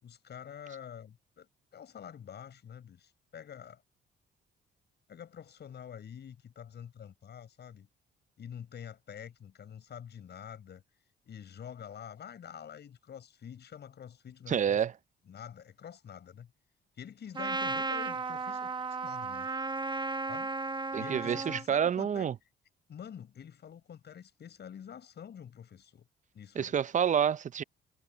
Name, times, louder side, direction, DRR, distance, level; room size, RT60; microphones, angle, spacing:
voice 1, 0.0-3.8 5.1-7.9 8.4-10.8 11.3-14.8 15.3-16.5 17.0-18.7 19.0-19.5 20.3-20.5 21.0-22.3 22.9-26.1 26.3-26.7, left 8 dB, 60° left, 7.2 m, -47 dB
voice 2, 14.5-14.9 20.9-22.3 26.6-27.6, right 8 dB, 40° right, 0.5 m, -28 dB
Trumpet, 17.4-21.6, right 3 dB, 25° right, 1.4 m, -34 dB
cardioid pair, 90°, 20 cm